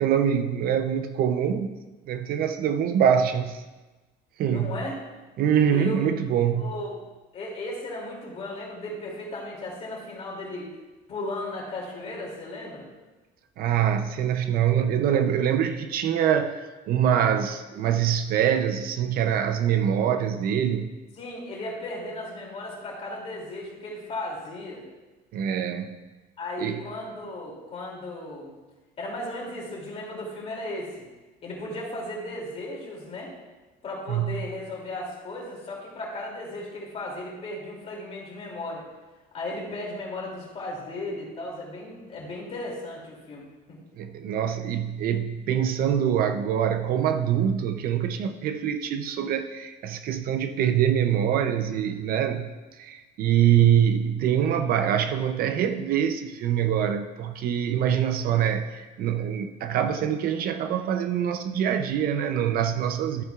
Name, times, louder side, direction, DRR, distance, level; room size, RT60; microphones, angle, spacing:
voice 1, 0.0-1.8 2.1-3.6 4.4-4.8 5.4-6.7 13.6-20.9 25.3-25.9 26.6-26.8 34.1-34.4 44.0-52.5 52.8-63.2, right 9 dB, 55° right, 8 dB, 0.5 m, -24 dB
voice 2, 4.4-4.9 5.7-6.0 6.6-7.0 7.3-10.7 11.1-12.9 21.1-24.8 26.4-28.6 29.0-30.9 31.4-33.3 33.8-38.8 39.3-43.8, left 1 dB, 35° left, -2 dB, 2.7 m, -35 dB
13.5 x 9.1 x 2.4 m, 1.2 s
cardioid pair, 165°, 19 cm